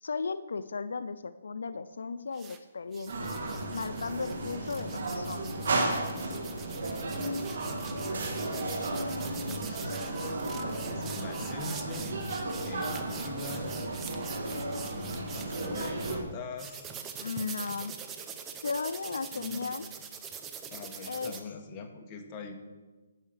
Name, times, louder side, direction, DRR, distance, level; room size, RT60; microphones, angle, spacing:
voice 1, 0.0-3.3 3.7-5.5 9.5-9.6 17.2-17.9 18.6-19.8 21.0-21.3, left 4 dB, 80° left, 13 dB, 0.4 m, -35 dB
sound 1, 2.3-2.6 2.9-16.2 16.6-21.4, right 7 dB, 10° right, 0.6 m, -44 dB
sound 2, 3.1-16.2, right 2 dB, 65° right, 2.0 m, -34 dB
voice 2, 8.9-12.1 12.7-13.8 14.8-16.9 19.3-19.9 20.7-22.5, left 4 dB, 20° left, 3 dB, 1.1 m, -43 dB
9.9 x 5.7 x 6.5 m, 1.2 s
hypercardioid pair, 170°, 0 cm